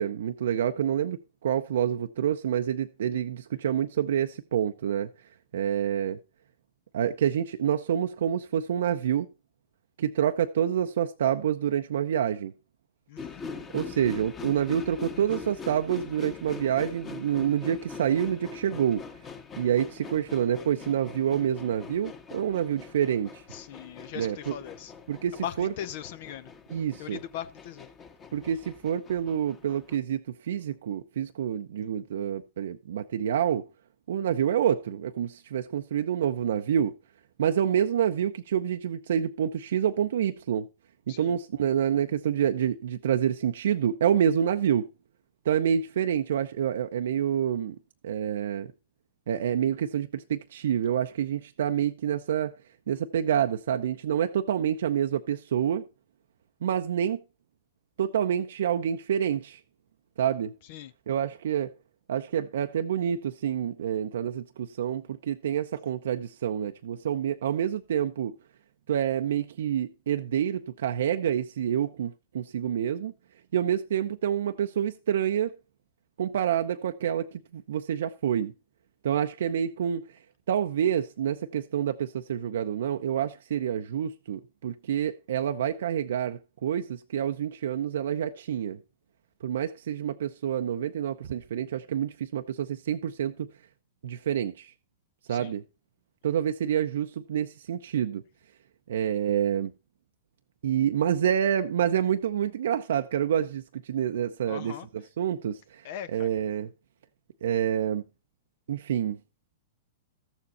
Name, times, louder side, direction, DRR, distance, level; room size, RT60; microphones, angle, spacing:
voice 1, 0.0-5.1 5.5-6.2 6.9-9.3 10.0-12.5 13.7-19.0 19.6-23.4 24.1-24.6 25.1-25.7 26.7-27.2 28.3-33.7 34.1-36.9 37.4-40.7 41.1-44.9 45.4-47.8 48.0-48.7 49.3-52.5 52.9-55.9 56.6-57.2 58.0-59.6 60.2-60.5 61.1-61.7 62.1-68.3 68.9-73.1 73.5-75.5 76.2-78.5 79.0-80.1 80.5-88.8 89.4-93.5 94.0-94.7 95.3-95.6 96.2-98.2 98.9-99.7 100.6-106.7 107.4-108.0 108.7-109.2, right 9 dB, 75° right, 0.6 m, -27 dB
voice 2, 13.1-13.4 23.5-24.9 25.4-26.5 27.0-27.9 41.1-41.3 60.7-60.9 95.3-95.5 104.5-104.9 105.8-106.3, left 10 dB, 55° left, 0.7 m, -39 dB
sound 1, 13.2-30.0, left 5 dB, 25° left, 1.5 m, -43 dB
13.5 x 7.1 x 4.2 m
hypercardioid pair, 120°, 0 cm